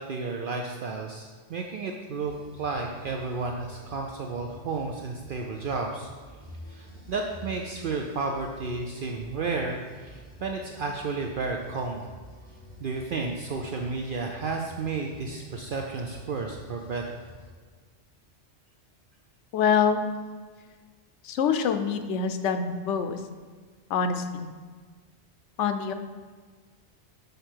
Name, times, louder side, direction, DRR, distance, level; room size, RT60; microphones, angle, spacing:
voice 1, 0.0-6.1 6.7-12.1 12.8-17.2, right 4 dB, 60° right, 1 dB, 0.6 m, -32 dB
sound 1, 2.2-17.5, left 1 dB, 5° left, 1.8 m, -48 dB
voice 2, 19.5-20.0 21.2-23.2 23.9-24.5 25.6-25.9, left 6 dB, 90° left, 8 dB, 0.9 m, -25 dB
6.6 x 5.0 x 4.5 m, 1.5 s
omnidirectional pair, 1.2 m